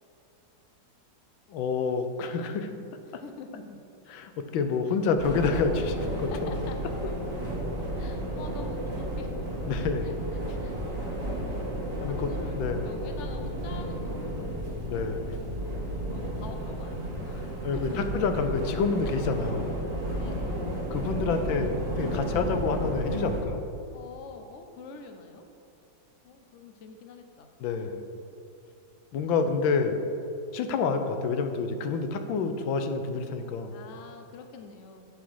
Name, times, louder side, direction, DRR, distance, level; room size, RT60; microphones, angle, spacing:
voice 1, 1.5-2.8 3.1-3.2 4.1-6.5 9.7-10.1 12.0-12.9 14.8-15.4 17.6-19.8 20.9-23.7 27.6-28.0 29.1-30.0 30.5-33.8, left 4 dB, 85° left, 7 dB, 1.5 m, -28 dB
voice 2, 3.1-3.8 4.9-5.0 6.2-6.8 8.0-9.3 9.6-9.8 10.0-10.1 10.6-10.8 12.0-14.6 15.3-18.0 20.2-20.7 23.9-25.4 26.2-27.5 33.7-35.1, left 4 dB, 55° left, 6 dB, 0.8 m, -46 dB
sound 1, 5.2-23.4, right 1 dB, 35° right, 1.7 m, -32 dB
8.3 x 6.1 x 6.2 m, 2.6 s
omnidirectional pair, 2.1 m